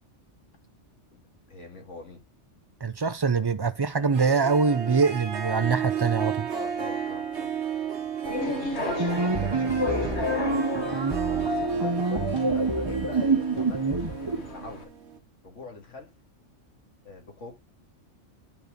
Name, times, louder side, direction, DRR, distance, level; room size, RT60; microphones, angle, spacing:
voice 1, 1.5-2.2 6.5-7.5 8.5-10.7 11.3-13.9 14.5-14.9 15.4-16.1 17.0-17.5, left 3 dB, 85° left, 2.6 m, -43 dB
voice 2, 2.8-6.5, right 5 dB, 40° right, 0.3 m, -24 dB
Harp, 4.0-15.2, right 8 dB, 70° right, 1.5 m, -34 dB
sound 1, 8.2-14.8, left 3 dB, 65° left, 2.0 m, -34 dB
sound 2, 8.9-14.5, right 3 dB, 25° right, 1.0 m, -27 dB
10.5 x 4.2 x 5.1 m
omnidirectional pair, 1.2 m